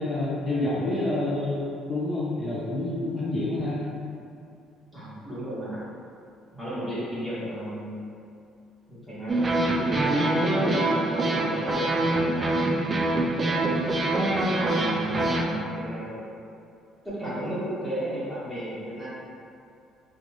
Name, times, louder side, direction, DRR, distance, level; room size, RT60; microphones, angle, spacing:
voice 1, 0.0-3.8, left 2 dB, 35° left, -7 dB, 0.5 m, -28 dB
voice 2, 4.9-5.8 6.5-8.1 8.9-13.7 14.5-16.2 17.0-19.1, right 1 dB, 5° right, -11 dB, 1.3 m, -34 dB
sound 1, 9.3-15.4, right 2 dB, 25° right, 0.4 m, -24 dB
3.8 x 2.3 x 3.0 m, 2.4 s
cardioid pair, 120°, 0 cm